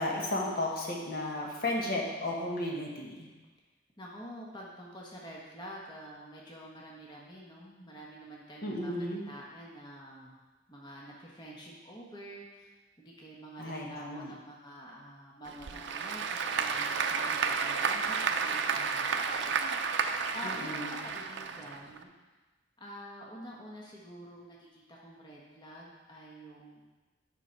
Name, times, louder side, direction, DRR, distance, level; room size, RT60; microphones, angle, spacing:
voice 1, 0.0-3.3 8.6-9.3 13.6-14.3 20.4-21.0, left 1 dB, 50° left, -2 dB, 1.3 m, -34 dB
voice 2, 4.0-10.3 10.7-12.7 13.0-19.6 20.1-22.1 22.8-26.8, equal, 25° left, -4 dB, 1.2 m, -47 dB
Applause / Crowd, 15.4-22.0, right 5 dB, 65° right, 0.5 m, -32 dB
9.2 x 5.5 x 4.5 m, 1.2 s
head